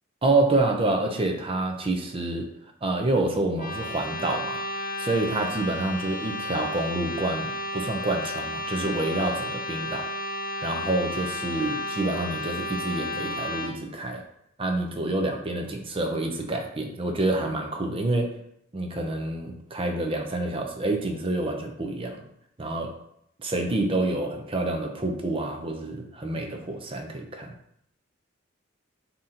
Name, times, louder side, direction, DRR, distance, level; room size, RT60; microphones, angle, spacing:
voice 1, 0.2-2.5 2.8-4.6 5.0-10.1 10.6-14.2 14.6-18.3 18.7-22.2 22.6-22.9 23.4-27.5, right 2 dB, 30° right, 3 dB, 0.5 m, -27 dB
sound 1, 3.5-13.7, left 1 dB, 45° left, 0.7 m, -33 dB
4.1 x 2.8 x 3.7 m, 0.73 s
head